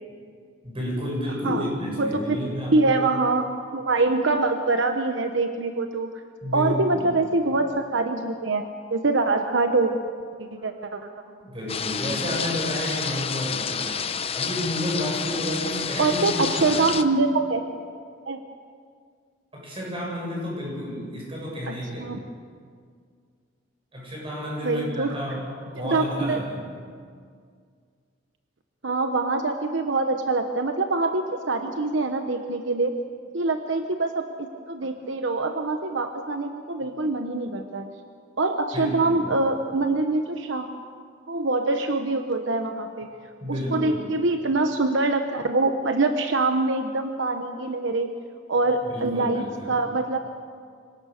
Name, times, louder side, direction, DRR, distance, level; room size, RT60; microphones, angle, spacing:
voice 1, 0.6-3.0 6.4-7.2 10.6-10.7 11.4-13.9 14.3-16.9 19.5-22.2 23.9-26.7 38.7-39.4 43.4-44.1 48.8-49.8, equal, 30° right, -3 dB, 7.6 m, -31 dB
voice 2, 2.0-2.4 2.7-6.1 6.5-9.9 10.4-11.0 16.0-17.6 18.3-18.4 22.0-22.2 24.6-25.2 25.8-26.4 28.8-32.9 33.3-37.9 38.4-40.7 41.3-43.1 43.5-48.1 48.5-50.2, right 3 dB, 75° right, 6 dB, 1.1 m, -24 dB
sound 1, 11.7-17.0, left 6 dB, 30° left, 0.8 m, -29 dB
25.0 x 17.5 x 6.6 m, 2.1 s
head